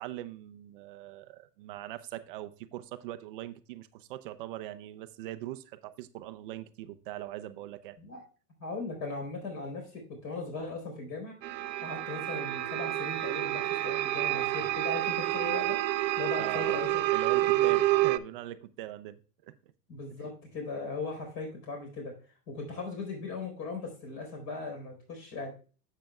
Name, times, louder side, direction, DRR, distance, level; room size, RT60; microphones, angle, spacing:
voice 1, 0.0-8.0 16.4-16.8 17.1-19.5 22.8-22.9, right 14 dB, 35° right, 10 dB, 0.5 m, -41 dB
voice 2, 8.6-11.3 11.8-15.8 16.2-17.0 17.4-18.1 19.9-22.1 22.5-25.5, left 3 dB, 35° left, 2 dB, 4.2 m, -38 dB
sound 1, 11.4-18.2, right 15 dB, 90° right, 0.6 m, -28 dB
10.0 x 7.7 x 2.3 m, 0.37 s
hypercardioid pair, 145°, 49 cm